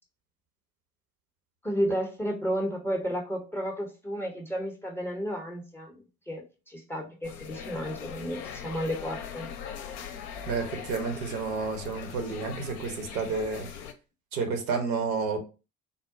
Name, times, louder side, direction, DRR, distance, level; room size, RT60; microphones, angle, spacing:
voice 1, 1.6-9.5, equal, 5° left, 2 dB, 0.7 m, -32 dB
sound 1, 7.2-13.9, left 8 dB, 55° left, 0.6 m, -41 dB
voice 2, 10.5-13.7 14.3-15.4, right 4 dB, 65° right, 4 dB, 1.1 m, -30 dB
3.7 x 2.1 x 3.6 m, 0.32 s
figure-of-eight pair, 60°, 44 cm